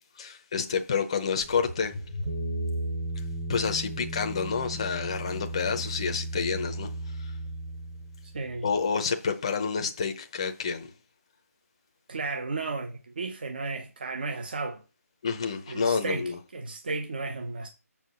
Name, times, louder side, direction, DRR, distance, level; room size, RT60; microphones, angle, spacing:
voice 1, 0.2-2.0 3.5-6.9 7.2-7.3 8.6-10.9 15.2-16.4, left 5 dB, 20° left, 0.7 m, -29 dB
sound 1, 1.4-8.8, right 1 dB, 10° right, 0.9 m, -35 dB
voice 2, 8.2-8.7 12.1-14.8 15.7-17.7, right 3 dB, 35° right, 0.8 m, -34 dB
6.8 x 4.7 x 6.7 m
hypercardioid pair, 175°, 9 cm